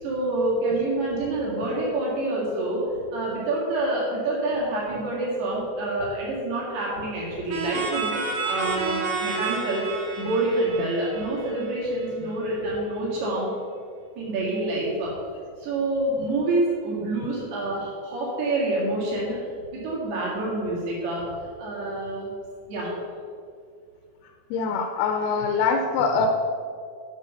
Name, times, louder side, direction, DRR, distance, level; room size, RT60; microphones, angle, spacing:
voice 1, 0.0-2.8 3.1-9.9 10.2-13.5 14.2-15.2 15.6-19.4 19.7-22.3 22.7-23.0, right 2 dB, 85° right, -6 dB, 4.3 m, -27 dB
sound 1, 7.5-12.1, right 4 dB, 65° right, 1.8 m, -30 dB
voice 2, 24.5-26.3, left 5 dB, 85° left, 4 dB, 2.5 m, -24 dB
9.7 x 6.9 x 5.6 m, 2.2 s
omnidirectional pair, 4.5 m